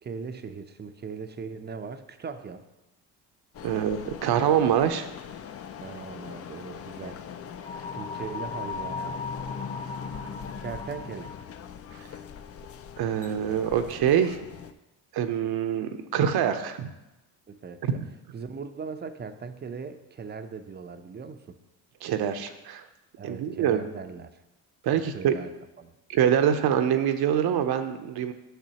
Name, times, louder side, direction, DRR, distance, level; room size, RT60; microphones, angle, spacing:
voice 1, 0.0-2.6 5.8-7.2 7.9-9.2 10.6-11.3 17.5-18.0 18.3-21.6 23.2-24.3 24.9-25.5 25.8-25.9, right 5 dB, 25° right, 9 dB, 0.6 m, -39 dB
sound 1, 3.5-14.7, left 8 dB, 35° left, 0.4 m, -42 dB
voice 2, 3.6-5.1 13.0-14.4 15.1-16.9 17.9-18.0 22.0-22.8 23.2-23.8 24.8-25.4 26.1-28.3, right 9 dB, 60° right, 9 dB, 0.7 m, -25 dB
sound 2, 7.6-11.5, left 4 dB, 20° left, 0.8 m, -36 dB
9.1 x 6.0 x 2.9 m, 0.99 s
supercardioid pair, 75°, 43 cm